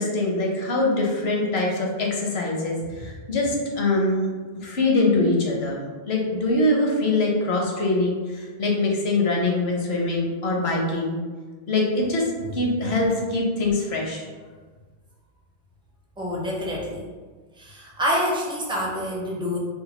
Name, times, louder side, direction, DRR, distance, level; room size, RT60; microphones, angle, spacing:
voice 1, 0.0-4.3 4.6-11.2 11.7-14.3, left 2 dB, 75° left, -1 dB, 1.0 m, -23 dB
voice 2, 16.2-17.0 17.6-19.6, equal, 5° right, -4 dB, 0.4 m, -27 dB
2.8 x 2.2 x 4.1 m, 1.4 s
omnidirectional pair, 1.1 m